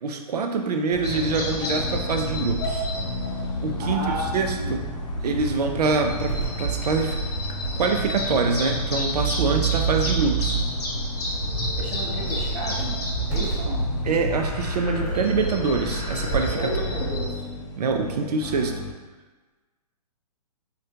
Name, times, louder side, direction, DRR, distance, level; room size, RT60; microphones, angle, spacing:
voice 1, 0.0-2.9 3.6-4.9 5.2-7.2 7.8-10.6 14.0-16.7 17.8-18.8, right 4 dB, 75° right, 5 dB, 0.5 m, -25 dB
sound 1, 0.9-18.9, left 3 dB, 50° left, 0.6 m, -36 dB
sound 2, 1.0-17.3, equal, 75° left, 1.0 m, -29 dB
voice 2, 3.8-4.7 11.8-13.0 13.3-13.8 16.5-17.4 18.0-18.5, right 1 dB, 30° right, -3 dB, 0.8 m, -33 dB
sound 3, 6.3-7.0 7.7-7.8 8.1-8.2 9.1-10.8 11.8-11.9 12.3-12.8 13.1-13.5 15.1-15.2 16.1-16.6 16.9-17.1, right 9 dB, 10° right, 1.2 m, -27 dB
4.9 x 2.2 x 2.7 m, 1.3 s
hypercardioid pair, 135°, 21 cm